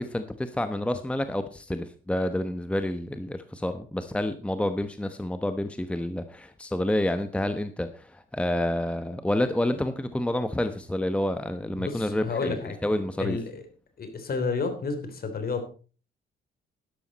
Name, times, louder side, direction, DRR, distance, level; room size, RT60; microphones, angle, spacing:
voice 1, 0.0-13.4, left 1 dB, 5° left, 9 dB, 1.0 m, -29 dB
voice 2, 11.8-12.7 13.2-13.6 14.0-15.7, left 4 dB, 50° left, 8 dB, 3.3 m, -31 dB
12.0 x 11.5 x 4.1 m, 0.37 s
cardioid pair, 90°, 20 cm